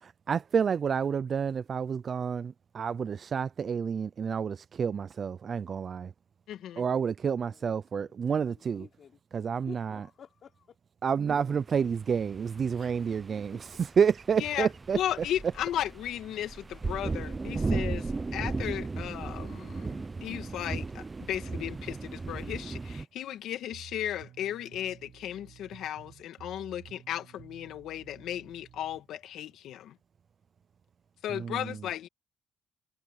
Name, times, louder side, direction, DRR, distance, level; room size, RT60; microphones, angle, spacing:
voice 1, 0.0-6.1 6.8-8.9 9.3-10.0 11.0-13.6 14.0-15.0 31.3-31.8, right 6 dB, 50° right, 0.5 m, -29 dB
voice 2, 6.5-6.8 14.4-14.7 14.9-29.9 31.2-32.1, left 11 dB, 80° left, 2.0 m, -35 dB
voice 3, 7.3-8.1 8.5-9.2 9.7-10.8 12.7-12.9 13.3-13.4 13.7-13.8, left 7 dB, 55° left, 5.5 m, -53 dB
sound 1, 11.7-23.0, right 3 dB, 25° right, 0.8 m, -36 dB
sound 2, 23.7-29.0, right 10 dB, 70° right, 5.6 m, -53 dB
cardioid pair, 90°, 0 cm